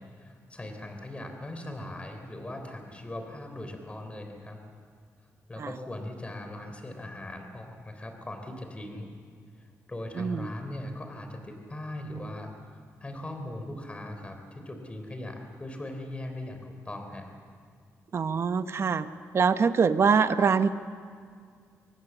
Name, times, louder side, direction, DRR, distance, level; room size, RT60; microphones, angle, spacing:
voice 1, 0.0-4.6 5.5-9.1 9.6-12.5 13.0-17.3, left 1 dB, 20° left, 5 dB, 3.8 m, -39 dB
voice 2, 10.2-10.5 18.1-19.1 19.3-20.7, right 6 dB, 50° right, 11 dB, 0.9 m, -24 dB
24.0 x 18.5 x 7.3 m, 2.1 s
cardioid pair, 100°, 6 cm